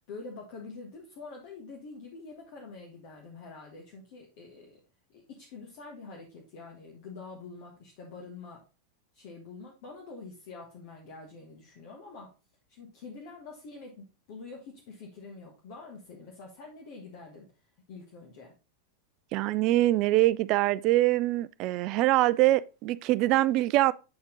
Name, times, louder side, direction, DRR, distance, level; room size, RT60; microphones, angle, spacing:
voice 1, 0.0-4.8 5.1-8.6 9.1-12.3 12.7-17.5 17.9-18.5, left 4 dB, 50° left, 1.4 m, -46 dB
voice 2, 19.3-23.9, right 16 dB, 40° right, 0.3 m, -24 dB
8.4 x 4.3 x 3.7 m
figure-of-eight pair, 90°, 0 cm